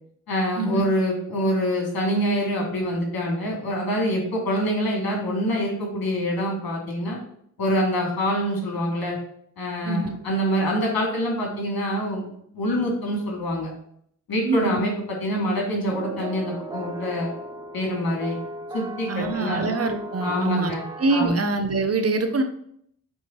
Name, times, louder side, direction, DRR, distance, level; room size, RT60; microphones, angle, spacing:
voice 1, 0.3-7.2 7.6-9.2 9.6-12.2 12.5-13.7 14.3-14.9 15.2-17.3 17.7-18.4 18.7-19.6 20.2-20.8 21.1-21.4, equal, 80° left, -1 dB, 2.7 m, -25 dB
voice 2, 9.8-10.2 14.4-14.8 19.1-20.7 21.0-22.4, right 3 dB, 45° right, 6 dB, 0.9 m, -24 dB
sound 1, 15.9-21.3, right 2 dB, 10° right, 0.5 m, -36 dB
8.2 x 3.5 x 4.6 m, 0.68 s
wide cardioid pair, 125°, 35 cm